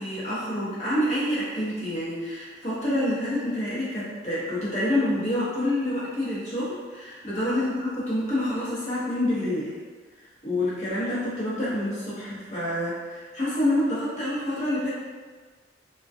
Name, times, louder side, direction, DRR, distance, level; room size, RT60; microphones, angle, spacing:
voice 1, 0.0-9.7 10.4-14.9, left 1 dB, 35° left, -9 dB, 0.8 m, -27 dB
2.3 x 2.2 x 2.5 m, 1.5 s
head